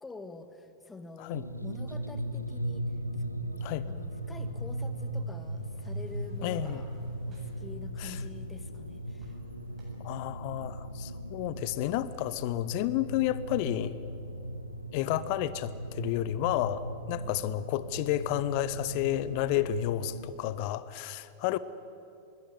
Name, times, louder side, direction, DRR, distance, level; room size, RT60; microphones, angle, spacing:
voice 1, 0.0-2.8 3.9-6.9 7.3-9.3 17.1-17.4, left 3 dB, 10° left, 9 dB, 1.7 m, -47 dB
sound 1, 1.3-20.3, right 1 dB, 90° right, 1.0 m, -38 dB
sound 2, 4.2-9.9, right 3 dB, 25° right, 8.0 m, -58 dB
voice 2, 6.4-6.8 8.0-8.2 10.0-13.9 14.9-16.8 17.1-21.6, left 13 dB, 45° left, 16 dB, 0.8 m, -31 dB
21.5 x 17.5 x 9.7 m, 2.6 s
figure-of-eight pair, 90°, 0 cm